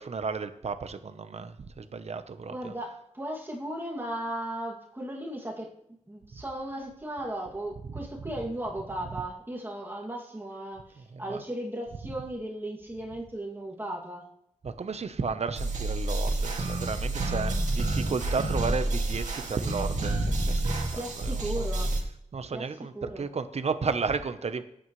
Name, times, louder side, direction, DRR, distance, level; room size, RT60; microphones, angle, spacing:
voice 1, 0.0-2.7 7.9-8.1 11.1-11.4 14.6-20.6 20.9-21.7 22.3-24.6, right 5 dB, 55° right, 10 dB, 0.9 m, -33 dB
voice 2, 2.5-5.7 6.1-14.3 20.9-21.9 22.5-23.3, right 1 dB, 15° right, -3 dB, 2.4 m, -36 dB
sound 1, 15.6-22.0, right 2 dB, 75° right, 2.3 m, -29 dB
18.5 x 8.8 x 3.2 m, 0.78 s
wide cardioid pair, 95°, 13 cm